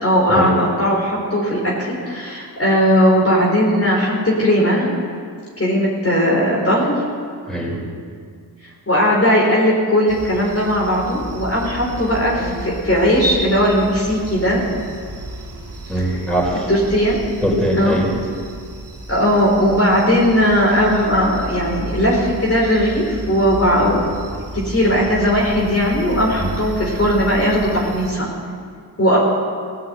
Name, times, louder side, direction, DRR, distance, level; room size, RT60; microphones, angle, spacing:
voice 1, 0.0-5.0 5.6-7.0 8.9-14.6 15.9-16.1 16.7-17.2 17.8-18.0 19.1-24.0 24.5-28.3 29.0-29.2, equal, 30° left, -4 dB, 3.9 m, -17 dB
voice 2, 7.5-7.8 12.3-12.7 15.9-16.7 17.4-18.1 26.3-26.5, equal, ahead, -3 dB, 5.0 m, -21 dB
sound 1, 10.1-28.1, right 1 dB, 45° right, 3.6 m, -33 dB
16.5 x 7.8 x 8.0 m, 2.1 s
cardioid pair, 50°, 44 cm